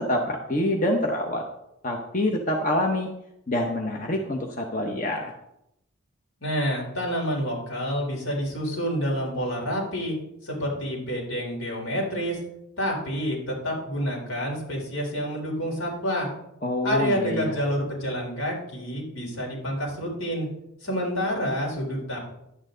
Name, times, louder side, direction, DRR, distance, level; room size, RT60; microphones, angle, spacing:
voice 1, 0.0-1.4 1.8-3.1 3.5-5.3 16.6-17.6, left 1 dB, 40° left, 2 dB, 0.9 m, -26 dB
voice 2, 6.4-10.1 10.4-12.4 12.8-16.3 16.8-20.5 20.8-22.2, equal, 80° left, -3 dB, 3.9 m, -28 dB
11.0 x 8.9 x 3.9 m, 0.82 s
head